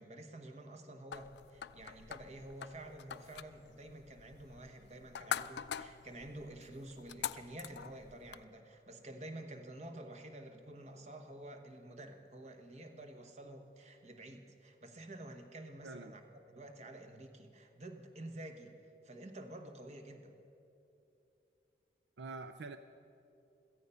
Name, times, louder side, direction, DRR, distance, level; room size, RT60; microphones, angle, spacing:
voice 1, 0.0-16.2 16.5-18.7 19.0-20.4, right 1 dB, 40° right, 6 dB, 1.1 m, -50 dB
sound 1, 1.1-8.4, left 8 dB, 75° left, 0.4 m, -45 dB
voice 2, 15.8-16.1 22.2-22.8, right 3 dB, 80° right, 10 dB, 0.5 m, -45 dB
16.5 x 14.5 x 5.6 m, 2.8 s
head